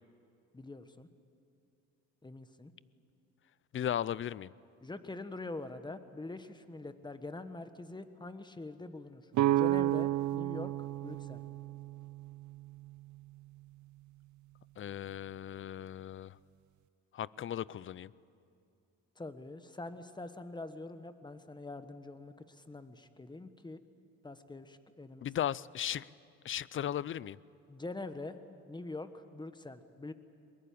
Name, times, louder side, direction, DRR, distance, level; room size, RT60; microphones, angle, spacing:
voice 1, 0.5-1.1 2.2-2.7 4.8-10.7 11.0-11.4 19.2-23.8 24.2-25.2 27.7-28.4 28.7-30.1, left 2 dB, 15° left, 10 dB, 1.4 m, -44 dB
voice 2, 3.7-4.5 14.8-16.4 17.1-18.1 25.2-26.1 26.4-27.4, left 10 dB, 40° left, 21 dB, 0.5 m, -36 dB
sound 1, 9.3-13.2, right 14 dB, 70° right, 0.6 m, -32 dB
22.0 x 21.5 x 8.7 m, 2.6 s
cardioid pair, 90°, 30 cm